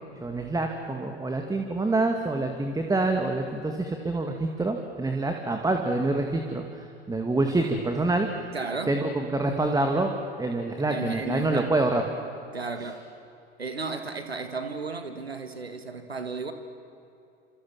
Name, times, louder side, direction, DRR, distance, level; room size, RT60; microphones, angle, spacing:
voice 1, 0.2-8.3 8.9-10.1 10.4-12.1, right 2 dB, 10° right, 4 dB, 2.2 m, -26 dB
voice 2, 8.5-9.0 10.8-11.7 12.5-13.1 13.6-16.5, right 4 dB, 90° right, 8 dB, 1.7 m, -34 dB
28.5 x 27.5 x 7.4 m, 2.6 s
figure-of-eight pair, 75°, 30 cm